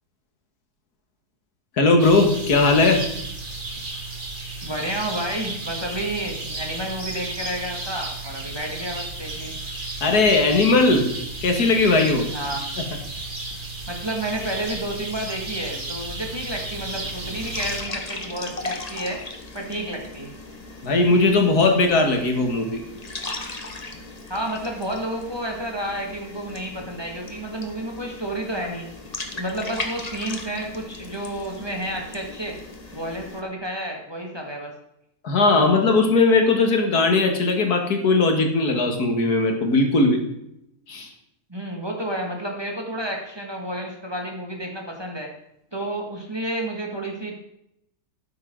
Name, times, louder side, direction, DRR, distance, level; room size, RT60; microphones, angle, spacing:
voice 1, 1.8-3.0 10.0-11.1 11.4-12.3 20.8-22.8 35.2-40.2 40.9-41.1, left 3 dB, 90° left, 4 dB, 2.3 m, -18 dB
sound 1, 2.0-17.8, right 2 dB, 35° right, 1.9 m, -33 dB
voice 2, 4.6-9.6 12.3-12.6 13.9-19.2 19.5-20.3 24.3-28.9 29.3-32.6 32.9-34.7 41.5-45.3 45.7-47.3, right 1 dB, 15° right, 1 dB, 2.0 m, -30 dB
sound 2, 16.7-33.4, left 2 dB, 30° left, 1.2 m, -37 dB
12.0 x 9.5 x 3.8 m, 0.77 s
omnidirectional pair, 1.6 m